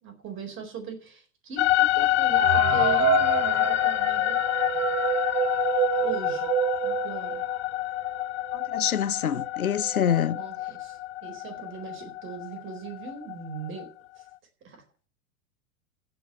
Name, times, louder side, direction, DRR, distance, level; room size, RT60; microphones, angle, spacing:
voice 1, 0.0-4.4 5.9-6.5 6.8-7.4 10.4-13.9 14.2-14.3 14.6-14.8, right 5 dB, 30° right, 4.2 m, -40 dB
sound 1, 1.6-13.9, left 16 dB, 50° left, 0.6 m, -27 dB
sound 2, 2.3-7.7 8.2-8.3 8.5-8.6 9.4-9.5 9.8-10.2, right 7 dB, 85° right, 1.6 m, -28 dB
voice 2, 8.5-10.4, left 9 dB, 80° left, 0.8 m, -26 dB
16.0 x 5.4 x 8.2 m
figure-of-eight pair, 95°, 43 cm